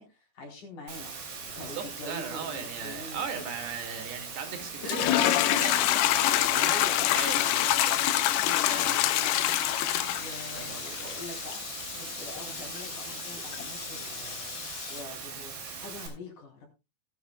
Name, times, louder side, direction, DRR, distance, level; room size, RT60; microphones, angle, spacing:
voice 1, 0.0-3.5 6.6-7.3 8.4-9.4 10.1-11.6 11.9-16.7, left 2 dB, 50° left, 5.2 m, -44 dB
Water, 0.9-16.1, right 5 dB, 65° right, 5.6 m, -41 dB
voice 2, 1.6-8.4 8.7-9.1 10.5-11.1, right 6 dB, 90° right, 4.3 m, -39 dB
sound 1, 4.8-15.0, left 13 dB, 80° left, 2.8 m, -27 dB
19.0 x 10.0 x 2.3 m
omnidirectional pair, 4.6 m